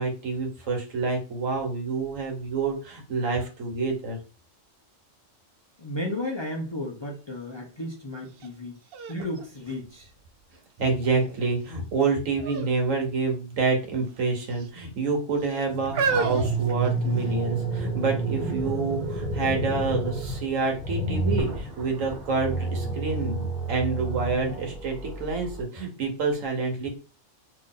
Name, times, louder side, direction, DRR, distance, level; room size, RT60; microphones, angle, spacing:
voice 1, 0.0-4.2 10.8-26.9, right 4 dB, 85° right, 3 dB, 1.5 m, -27 dB
voice 2, 5.8-8.8 9.1-10.1, left 1 dB, 30° left, -1 dB, 0.6 m, -33 dB
sound 1, 8.4-8.5 8.9-10.4 11.0-11.5 12.4-12.7 13.0-13.2 14.0-14.7 15.4-17.4 18.2-18.3, right 5 dB, 60° right, 0.7 m, -31 dB
sound 2, 15.7-25.6, right 3 dB, 40° right, 1.0 m, -30 dB
3.3 x 2.6 x 3.7 m, 0.33 s
omnidirectional pair, 1.3 m